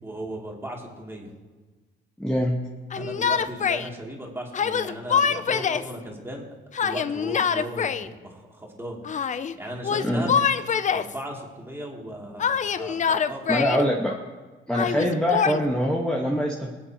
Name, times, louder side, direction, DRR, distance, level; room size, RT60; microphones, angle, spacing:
voice 1, 0.0-1.3 3.0-6.5 6.8-9.0 9.5-10.4 10.9-13.4, right 1 dB, 10° right, -2 dB, 2.8 m, -36 dB
voice 2, 2.2-2.6 10.0-10.3 13.5-14.2 14.7-16.7, equal, 5° left, -2 dB, 1.4 m, -24 dB
Yell, 2.9-3.9 4.5-5.9 6.7-8.1 9.0-9.5 9.8-11.2 12.4-13.8 14.7-15.6, left 7 dB, 40° left, 0.5 m, -25 dB
25.0 x 8.5 x 3.0 m, 1.3 s
cardioid pair, 90°, 20 cm